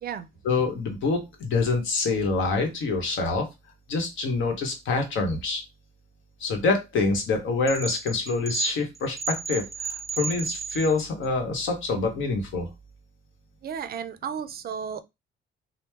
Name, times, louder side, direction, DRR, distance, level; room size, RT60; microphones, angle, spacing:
voice 1, 0.4-3.4 3.9-5.6 6.4-12.7, left 3 dB, 75° left, 1.0 m, -26 dB
sound 1, 7.7-11.3, right 5 dB, ahead, 0.9 m, -33 dB
voice 2, 13.6-15.0, right 7 dB, 50° right, 0.4 m, -33 dB
2.9 x 2.0 x 3.4 m
cardioid pair, 90°, 20 cm